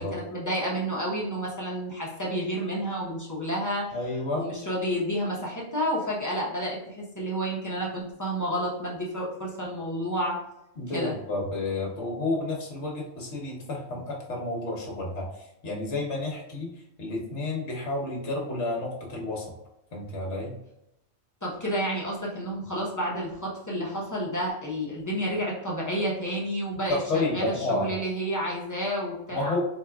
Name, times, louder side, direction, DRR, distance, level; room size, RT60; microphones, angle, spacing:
voice 1, 0.0-4.0 4.3-10.4 10.9-11.2 21.4-29.6, equal, 15° left, -5 dB, 0.7 m, -30 dB
voice 2, 3.9-4.5 10.8-15.3 15.6-19.4 19.9-20.5 26.9-27.9 29.3-29.6, left 2 dB, 65° left, -2 dB, 1.3 m, -30 dB
4.1 x 3.3 x 2.3 m, 0.85 s
omnidirectional pair, 1.3 m